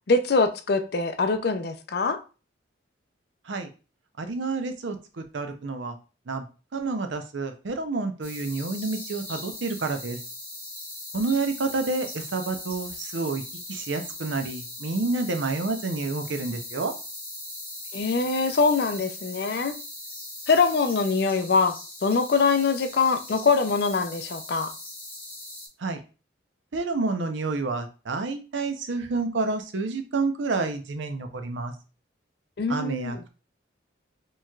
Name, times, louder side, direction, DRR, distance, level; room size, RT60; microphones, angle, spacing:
voice 1, 0.1-2.2 17.9-19.7 20.5-21.8 22.0-24.7 32.6-33.2, left 4 dB, 55° left, 0.4 m, -23 dB
voice 2, 4.2-6.0 6.3-6.4 6.7-10.2 11.1-13.4 13.7-16.9 25.8-26.0 26.7-31.7 32.7-33.3, right 3 dB, 80° right, 0.6 m, -29 dB
sound 1, 8.2-25.7, left 1 dB, 10° left, 0.9 m, -40 dB
4.5 x 3.0 x 2.3 m
head